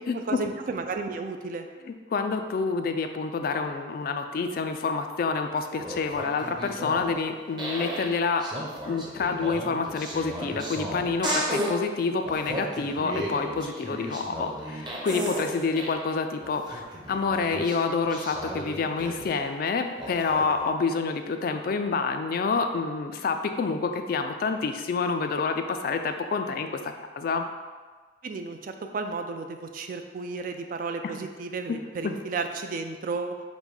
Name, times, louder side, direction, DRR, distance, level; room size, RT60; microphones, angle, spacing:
voice 1, 0.1-1.7 28.2-33.4, right 4 dB, 45° right, 6 dB, 0.3 m, -33 dB
voice 2, 2.1-8.4 8.9-27.5 32.0-32.1, left 4 dB, 50° left, 7 dB, 0.3 m, -28 dB
sound 1, 5.6-7.2 7.6-8.1 8.4-11.7 12.2-16.0 16.4-19.5 20.0-20.7, equal, 25° right, 0.7 m, -34 dB
5.1 x 2.2 x 4.7 m, 1.4 s
head